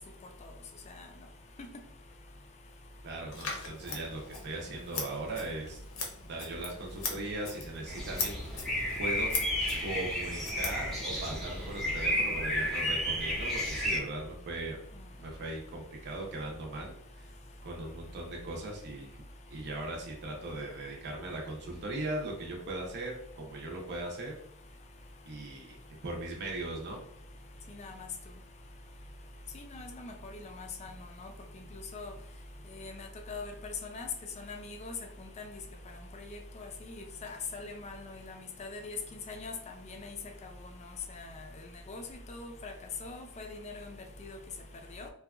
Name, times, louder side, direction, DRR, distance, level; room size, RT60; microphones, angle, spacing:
voice 1, 3.0-5.8 6.2-9.3 9.8-14.8 15.2-17.3 17.6-19.2 19.5-24.3 25.3-25.8 26.0-27.0, right 2 dB, 50° right, 0.6 m, -39 dB
Scissors, 3.3-11.3, left 4 dB, 65° left, 0.6 m, -40 dB
sound 1, 7.9-14.0, equal, ahead, 0.7 m, -32 dB
voice 2, 27.7-28.1 29.5-30.9 31.2-31.3 31.7-32.1 32.7-34.1 34.4-34.9 35.4-35.6 36.2-39.5 39.8-40.1 41.1-41.4 41.9-42.0 42.3-42.7 43.0-43.9 44.2-44.4 44.9-45.1, left 3 dB, 30° left, 0.3 m, -42 dB
2.7 x 2.2 x 2.3 m
head